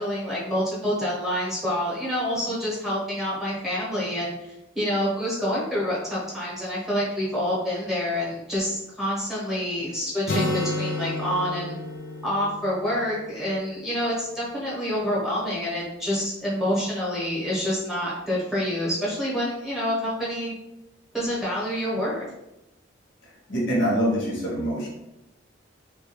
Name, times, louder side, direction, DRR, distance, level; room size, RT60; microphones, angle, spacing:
voice 1, 0.0-11.8 12.2-20.5 21.1-22.3, equal, ahead, -8 dB, 0.8 m, -27 dB
Acoustic guitar, 10.3-14.0, left 1 dB, 50° left, 0.5 m, -31 dB
voice 2, 23.5-24.9, equal, 70° left, -3 dB, 0.9 m, -24 dB
2.3 x 2.2 x 2.8 m, 0.90 s
head